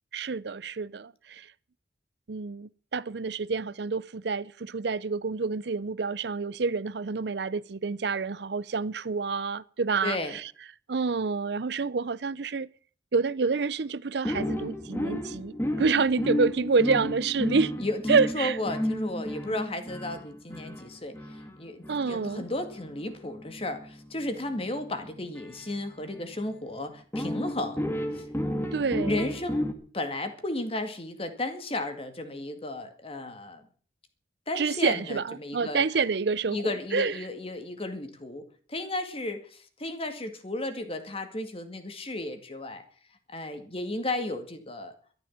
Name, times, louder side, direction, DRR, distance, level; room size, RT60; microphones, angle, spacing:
voice 1, 0.1-1.5 2.3-10.4 10.9-12.7 13.1-17.7 18.1-18.6 21.9-22.5 28.7-29.2 34.6-37.2, right 4 dB, 65° right, 0.6 m, -28 dB
voice 2, 10.0-10.4 17.8-27.9 28.1-28.3 29.0-29.7 29.9-33.6 34.5-35.9 36.5-42.8 43.3-44.9, left 2 dB, 30° left, 2.1 m, -34 dB
sound 1, 14.2-26.4 27.1-29.7, left 1 dB, 15° left, 1.8 m, -33 dB
13.0 x 11.5 x 7.3 m
head